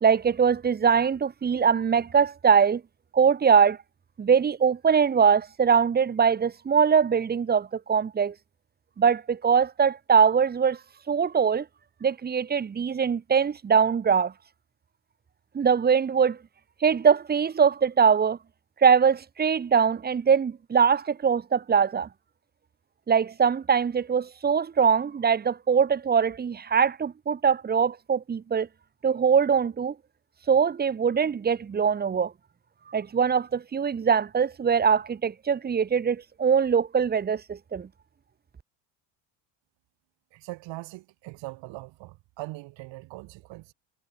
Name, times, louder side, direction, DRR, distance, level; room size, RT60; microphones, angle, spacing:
voice 1, 0.0-2.8 3.1-3.8 4.2-8.3 9.0-10.8 11.1-11.6 12.0-14.3 15.5-16.4 16.8-18.4 18.8-22.1 23.1-28.7 29.0-29.9 30.5-32.3 32.9-37.9, right 6 dB, 20° right, 0.9 m, -22 dB
voice 2, 40.3-43.7, right 20 dB, 70° right, 7.8 m, -41 dB
supercardioid pair, 100°, 46 cm